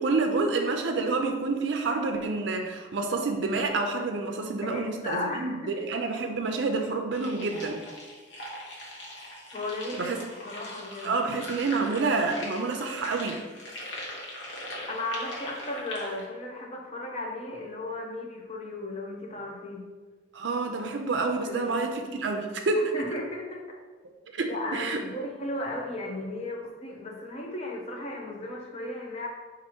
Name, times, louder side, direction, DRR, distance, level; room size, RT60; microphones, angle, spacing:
voice 1, 0.0-7.8 10.0-10.2 11.0-13.4 20.3-22.9 24.4-25.0, right 3 dB, 65° right, 4 dB, 0.4 m, -28 dB
voice 2, 4.6-5.8 9.5-10.1 10.4-11.2 14.9-19.9 21.4-21.6 22.7-23.8 24.5-29.3, left 2 dB, 30° left, 0 dB, 0.6 m, -35 dB
sound 1, 7.1-16.2, left 1 dB, 80° left, 1.0 m, -41 dB
4.3 x 2.5 x 4.4 m, 1.4 s
head